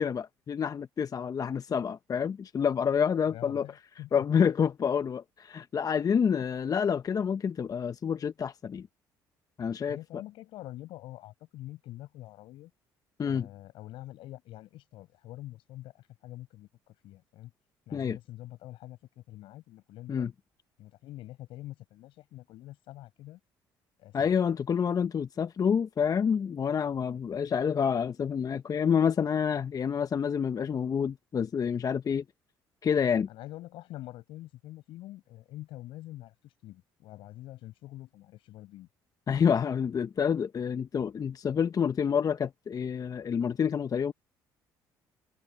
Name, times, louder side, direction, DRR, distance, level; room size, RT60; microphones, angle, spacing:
voice 1, 0.0-3.7 4.1-8.9 9.6-10.0 13.2-13.5 17.9-18.2 20.1-20.3 24.1-32.2 32.8-33.3 39.3-44.1, left 7 dB, 40° left, 0.8 m, -28 dB
voice 2, 3.3-4.4 9.9-12.7 13.2-17.5 17.9-20.3 20.8-23.4 24.0-24.3 33.3-38.9, left 16 dB, 75° left, 7.5 m, -46 dB
supercardioid pair, 65°, 9 cm